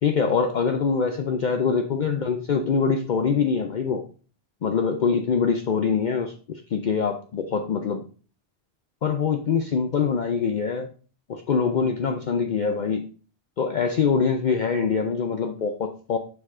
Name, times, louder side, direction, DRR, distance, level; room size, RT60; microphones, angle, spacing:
voice 1, 0.0-4.0 4.6-8.0 9.0-10.9 11.3-13.0 13.6-16.2, left 5 dB, 50° left, 4 dB, 0.6 m, -24 dB
6.6 x 4.8 x 3.6 m, 0.40 s
omnidirectional pair, 1.1 m